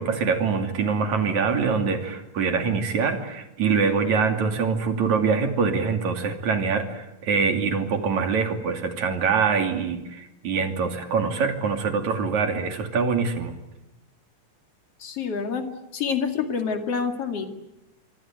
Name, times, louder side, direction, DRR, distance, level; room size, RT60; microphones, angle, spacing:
voice 1, 0.0-13.6, right 5 dB, 75° right, 6 dB, 4.0 m, -24 dB
voice 2, 15.0-15.7 15.9-17.5, left 6 dB, 55° left, 6 dB, 3.3 m, -27 dB
25.0 x 25.0 x 9.1 m, 0.94 s
omnidirectional pair, 3.3 m